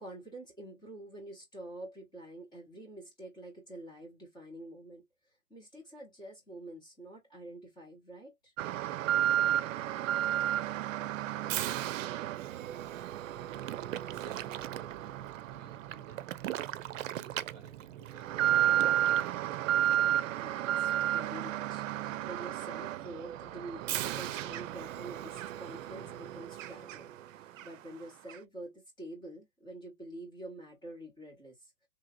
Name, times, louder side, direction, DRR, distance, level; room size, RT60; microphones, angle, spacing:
voice 1, 0.0-8.5 20.3-31.9, right 1 dB, 10° left, 1.4 m, -47 dB
Alarm, 8.6-27.2 27.6-27.7 28.3-28.4, right 12 dB, 90° right, 0.5 m, -33 dB
voice 2, 12.6-13.3 13.7-16.3 16.9-18.5, right 6 dB, 30° right, 1.3 m, -56 dB
3.2 x 2.7 x 2.4 m
hypercardioid pair, 160°, 38 cm